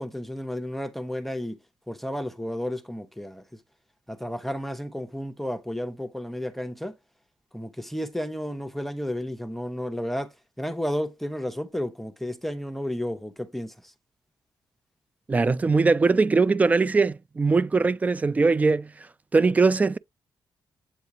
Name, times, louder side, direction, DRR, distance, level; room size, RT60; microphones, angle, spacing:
voice 1, 0.0-1.6 1.9-3.4 4.1-7.0 7.5-13.9, equal, 5° left, 0.7 m, -32 dB
voice 2, 15.3-18.9 19.3-20.0, right 4 dB, 20° right, 0.3 m, -21 dB
8.1 x 2.7 x 4.7 m
wide cardioid pair, 155°, 8 cm